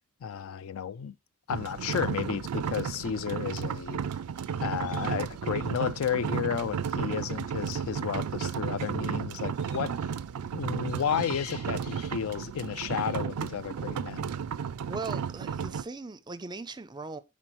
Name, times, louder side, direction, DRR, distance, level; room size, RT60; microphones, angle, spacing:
voice 1, 0.2-1.1 1.5-4.0 4.6-9.9 10.5-14.3, left 8 dB, 65° left, 0.4 m, -32 dB
sound 1, 1.5-15.8, right 7 dB, 80° right, 0.4 m, -33 dB
sound 2, 2.9-3.1 4.3-5.8 9.5-10.0 10.8-13.2, left 7 dB, 85° left, 1.0 m, -49 dB
voice 2, 14.9-17.2, right 3 dB, 20° right, 0.5 m, -39 dB
10.5 x 4.1 x 3.0 m
head